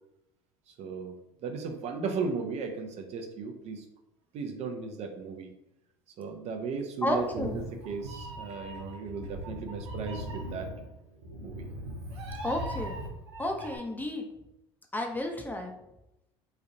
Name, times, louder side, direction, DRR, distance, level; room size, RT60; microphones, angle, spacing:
voice 1, 0.7-3.9 4.3-5.5 6.2-10.7 11.4-11.7, right 5 dB, 50° right, 4 dB, 0.7 m, -36 dB
voice 2, 7.0-7.6 12.4-13.0 13.4-14.3 14.9-15.7, left 1 dB, 10° left, 3 dB, 0.7 m, -31 dB
Meow, 7.1-13.8, right 1 dB, 90° right, 0.7 m, -40 dB
3.2 x 2.5 x 3.8 m, 0.86 s
hypercardioid pair, 75°, 14 cm